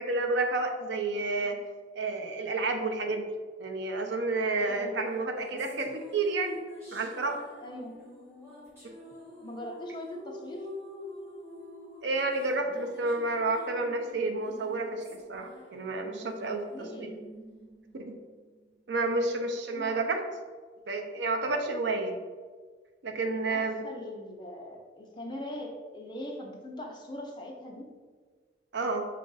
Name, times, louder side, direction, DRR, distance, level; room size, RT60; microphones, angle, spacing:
voice 1, 0.0-1.6 1.9-3.3 3.6-6.6 6.9-7.4 12.0-17.1 17.9-18.1 18.9-20.2 20.9-22.2 23.0-23.8 28.7-29.0, right 3 dB, 70° right, 4 dB, 0.5 m, -30 dB
voice 2, 4.6-5.0 7.6-8.0 9.4-10.7 16.7-17.2 19.7-20.0 23.5-27.9, left 1 dB, 25° left, 0 dB, 0.6 m, -41 dB
sound 1, 5.1-18.7, left 1 dB, 15° right, 1.4 m, -48 dB
5.5 x 2.5 x 3.9 m, 1.5 s
head